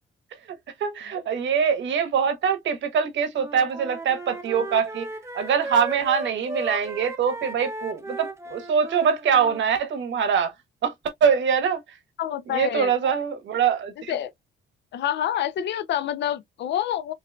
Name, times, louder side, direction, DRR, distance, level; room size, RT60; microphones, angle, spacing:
voice 1, 0.8-5.1 5.3-10.5 10.8-10.9 11.2-11.8 12.5-14.1, right 7 dB, 70° right, 1.1 m, -23 dB
Wind instrument woodwind instrument, 3.3-9.6, right 2 dB, 15° right, 0.7 m, -36 dB
voice 2, 12.2-13.1 14.1-14.3 14.9-17.1, left 10 dB, 65° left, 0.5 m, -27 dB
3.9 x 2.7 x 2.2 m
cardioid pair, 90°, 20 cm